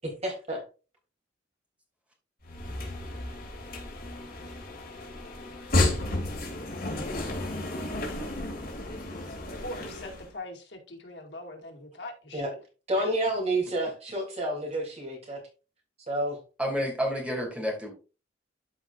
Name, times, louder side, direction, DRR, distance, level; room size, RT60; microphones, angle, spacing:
voice 1, 0.0-0.6 12.3-12.5 12.9-15.4 16.1-16.4, right 1 dB, 35° right, 0 dB, 3.3 m, -29 dB
sound 1, 2.4-10.3, left 2 dB, 55° left, 2.9 m, -32 dB
voice 2, 9.6-12.5 13.0-13.1, left 2 dB, 75° left, 1 dB, 2.2 m, -41 dB
voice 3, 16.6-17.9, equal, 5° right, 0 dB, 2.7 m, -29 dB
12.5 x 5.0 x 2.6 m, 0.33 s
head